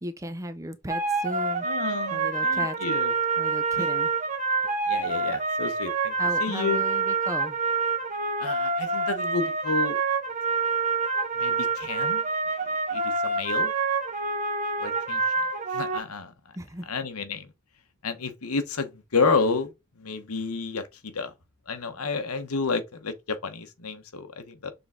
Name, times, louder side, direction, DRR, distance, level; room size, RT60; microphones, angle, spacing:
voice 1, 0.0-1.7 2.1-2.8 3.4-4.1 6.1-7.6 16.5-16.8, equal, 15° right, 0.6 m, -36 dB
sound 1, 0.9-16.0, right 4 dB, 35° right, 1.1 m, -27 dB
voice 2, 1.6-3.1 3.8-3.9 4.9-6.1 6.4-6.8 8.4-10.0 11.4-12.2 12.9-13.7 14.8-15.2 15.7-16.3 16.9-17.5 18.0-19.7 20.0-21.3 21.7-24.7, left 4 dB, 80° left, 1.1 m, -30 dB
6.8 x 3.8 x 3.7 m
head